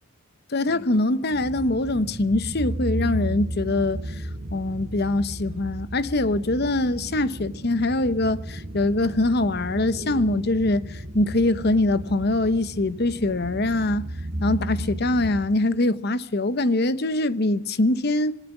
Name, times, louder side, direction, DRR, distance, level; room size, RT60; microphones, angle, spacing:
voice 1, 0.5-4.1 4.5-14.0 14.4-18.4, left 2 dB, 50° left, 0.9 m, -23 dB
sound 1, 1.3-15.4, right 1 dB, 40° right, 7.4 m, -34 dB
26.5 x 20.0 x 6.0 m
head